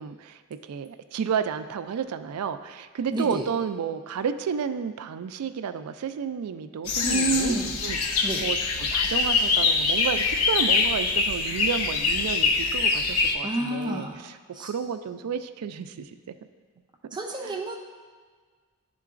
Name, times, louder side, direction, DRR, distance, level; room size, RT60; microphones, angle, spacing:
voice 1, 0.0-7.6 7.8-8.6 8.9-14.3 14.6-16.3 17.4-17.6, right 7 dB, 80° right, 10 dB, 0.3 m, -31 dB
voice 2, 3.1-3.4 7.0-7.8 8.2-8.4 13.4-14.2 14.5-14.7 17.1-17.8, right 2 dB, 20° right, -1 dB, 0.5 m, -28 dB
sound 1, 6.9-13.3, left 4 dB, 85° left, 0.5 m, -24 dB
11.0 x 3.8 x 2.5 m, 1.5 s
head